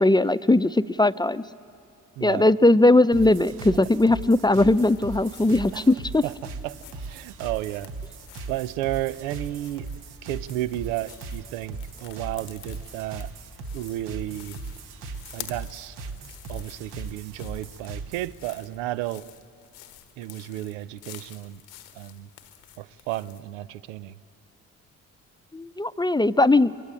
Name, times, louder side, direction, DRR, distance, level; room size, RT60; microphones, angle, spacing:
voice 1, 0.0-1.4 2.2-6.2 25.5-26.7, left 2 dB, 10° left, 0.6 m, -19 dB
voice 2, 2.2-2.5 5.7-5.9 6.2-6.3 6.6-7.9 8.5-9.9 10.2-13.3 13.7-14.6 15.3-16.0 16.5-19.2 20.2-21.6 22.0-22.3 22.8-24.2, right 15 dB, 90° right, 0.6 m, -32 dB
sound 1, 3.1-18.4, right 3 dB, 75° right, 1.7 m, -39 dB
sound 2, 4.6-23.5, left 13 dB, 85° left, 1.2 m, -49 dB
23.5 x 22.5 x 8.9 m
hypercardioid pair, 40°, 38 cm